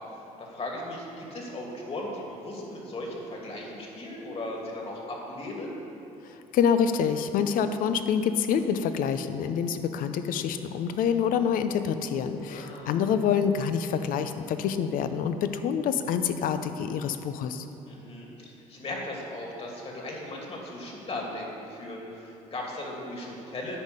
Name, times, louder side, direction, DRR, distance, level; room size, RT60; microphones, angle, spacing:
voice 1, 0.4-5.8 12.5-13.0 17.9-23.8, left 1 dB, 45° left, -2 dB, 2.8 m, -37 dB
voice 2, 6.2-17.7, left 7 dB, 70° left, 9 dB, 0.7 m, -27 dB
10.0 x 5.6 x 8.2 m, 2.9 s
supercardioid pair, 80°, 15 cm